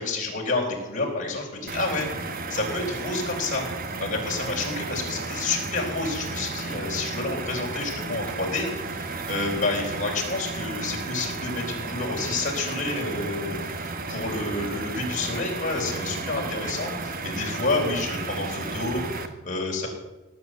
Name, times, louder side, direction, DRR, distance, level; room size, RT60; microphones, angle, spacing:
voice 1, 0.0-2.1 2.5-19.9, left 3 dB, 40° left, -1 dB, 3.9 m, -29 dB
sound 1, 1.7-19.3, right 3 dB, 45° right, 1.3 m, -33 dB
18.0 x 8.0 x 7.6 m, 1.1 s
head